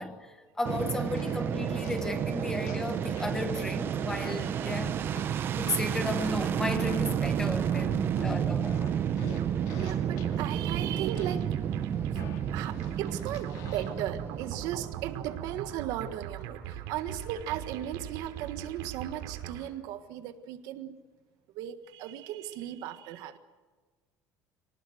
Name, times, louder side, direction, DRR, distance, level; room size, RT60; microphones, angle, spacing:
voice 1, 0.0-5.0 5.6-8.8, left 2 dB, 10° left, 1.3 m, -34 dB
sound 1, 0.6-0.7 1.2-2.2 2.7-3.4 4.2-7.3 7.7-10.6 11.2-11.6 12.2-14.1, left 9 dB, 60° left, 2.4 m, -49 dB
Fixed-wing aircraft airplane, 0.6-15.8, right 9 dB, 35° right, 0.8 m, -31 dB
voice 2, 4.4-5.0 5.7-5.8 7.7-8.3 8.9-11.6 12.1-12.2 12.5-21.0 21.5-23.4, right 11 dB, 65° right, 1.5 m, -37 dB
sound 2, 9.4-19.7, right 10 dB, 90° right, 3.3 m, -41 dB
25.5 x 19.0 x 7.9 m
cardioid pair, 175°, 7 cm